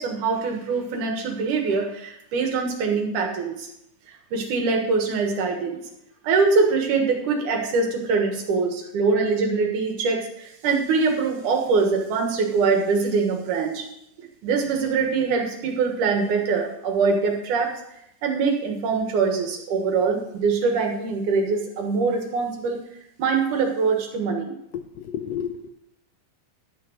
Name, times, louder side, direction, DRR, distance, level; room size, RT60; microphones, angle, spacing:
voice 1, 0.0-3.7 4.3-5.8 6.2-13.9 14.2-17.7 18.2-22.8 23.2-24.6, right 4 dB, 85° right, 3 dB, 3.0 m, -23 dB
voice 2, 24.7-25.7, left 9 dB, 75° left, 7 dB, 1.5 m, -31 dB
12.0 x 6.3 x 6.6 m, 0.80 s
omnidirectional pair, 3.5 m